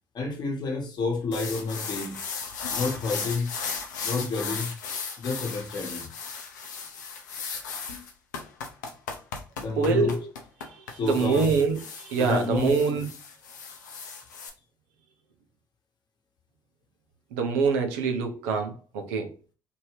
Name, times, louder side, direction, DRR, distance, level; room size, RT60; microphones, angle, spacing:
voice 1, 0.1-2.2 2.7-3.5 4.0-4.7 5.2-6.1 9.6-10.2 10.9-11.5 12.1-12.8, left 3 dB, 50° left, 1.1 m, -29 dB
sound 1, 1.3-14.5, left 5 dB, 90° left, 0.5 m, -36 dB
voice 2, 9.8-10.3 11.0-13.1 17.3-19.3, right 5 dB, 80° right, 0.6 m, -25 dB
2.8 x 2.6 x 3.1 m
hypercardioid pair, 50°, 9 cm